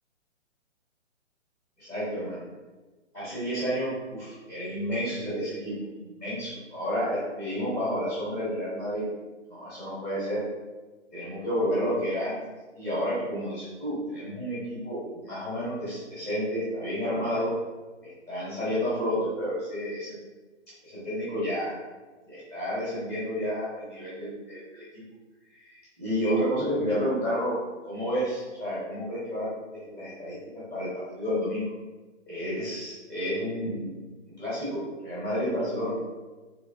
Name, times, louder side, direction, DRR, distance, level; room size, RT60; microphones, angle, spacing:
voice 1, 1.8-2.4 3.1-9.0 9.5-10.4 11.1-12.4 12.8-17.5 18.0-20.2 20.8-21.7 22.3-24.8 25.5-27.6 27.8-29.5 29.7-31.7 32.2-33.9 34.4-35.9, equal, 10° left, -9 dB, 0.9 m, -30 dB
3.8 x 3.2 x 2.6 m, 1.3 s
hypercardioid pair, 160°, 37 cm